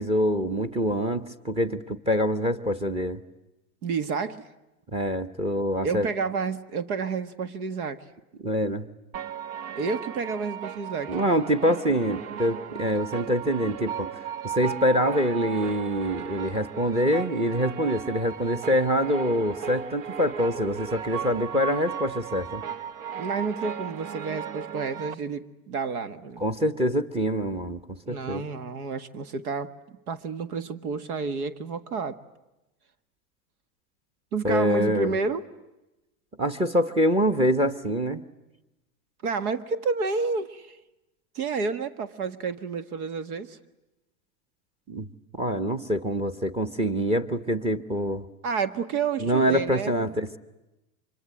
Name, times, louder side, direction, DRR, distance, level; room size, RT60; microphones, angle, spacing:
voice 1, 0.0-3.2 4.9-6.1 8.4-8.9 11.1-14.1 14.4-22.6 26.4-28.4 34.4-35.1 36.4-38.2 44.9-45.1 45.3-48.2 49.2-50.4, equal, 15° right, 11 dB, 1.1 m, -25 dB
voice 2, 3.8-4.5 5.8-8.0 9.8-11.3 23.2-26.4 28.0-29.7 30.1-32.2 34.3-35.4 39.2-40.8 41.4-43.6 48.4-50.1, right 5 dB, 80° right, 13 dB, 1.8 m, -30 dB
sound 1, 9.1-25.1, right 8 dB, 60° right, 1.1 m, -36 dB
25.5 x 23.5 x 9.1 m, 0.98 s
supercardioid pair, 130°, 44 cm